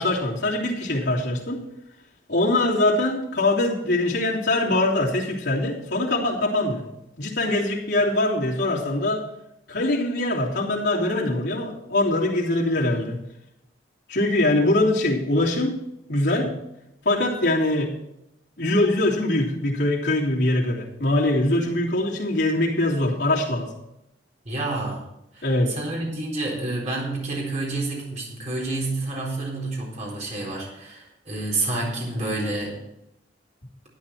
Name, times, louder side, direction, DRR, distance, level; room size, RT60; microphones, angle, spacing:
voice 1, 0.0-1.6 2.3-6.8 7.2-9.2 9.7-13.2 14.1-15.8 16.1-16.5 17.0-17.9 18.6-23.7 25.4-25.7, left 1 dB, 65° left, -4 dB, 3.1 m, -23 dB
voice 2, 24.5-25.0 25.3-32.8, right 2 dB, 40° right, -3 dB, 3.9 m, -29 dB
12.0 x 10.0 x 4.5 m, 0.84 s
head